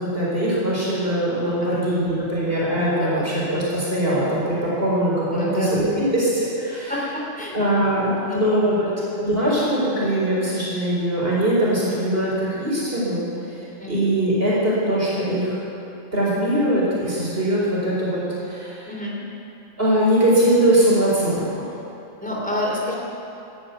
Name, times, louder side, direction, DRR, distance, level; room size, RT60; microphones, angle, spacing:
voice 1, 0.0-6.9 7.5-8.9 9.2-15.6 16.1-18.9 19.8-21.7, right 1 dB, 50° right, -7 dB, 4.7 m, -21 dB
voice 2, 5.3-5.7 6.9-7.6 7.9-8.4 8.9-9.0 13.8-14.0 18.9-19.1 22.2-22.9, left 1 dB, 5° left, -3 dB, 3.4 m, -28 dB
13.5 x 10.5 x 9.4 m, 2.8 s
omnidirectional pair, 1.2 m